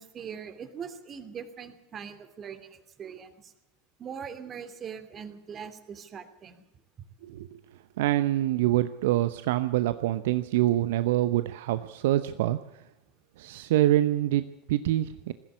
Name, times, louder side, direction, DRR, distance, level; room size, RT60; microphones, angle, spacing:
voice 1, 0.0-3.5 4.0-6.6, right 7 dB, 35° right, 9 dB, 2.9 m, -41 dB
voice 2, 7.2-7.6 8.0-12.6 13.4-15.3, right 14 dB, 65° right, 12 dB, 0.8 m, -25 dB
21.0 x 15.5 x 8.4 m, 0.93 s
figure-of-eight pair, 80°, 0 cm